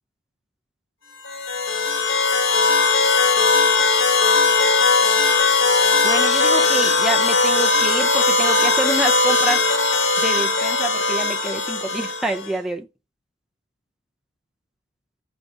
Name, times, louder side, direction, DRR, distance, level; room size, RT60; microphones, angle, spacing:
sound 1, 1.2-12.5, left 3 dB, 65° left, 1.9 m, -19 dB
voice 1, 6.0-9.6 10.2-12.9, right 2 dB, 5° right, 0.6 m, -27 dB
5.4 x 4.0 x 4.6 m
head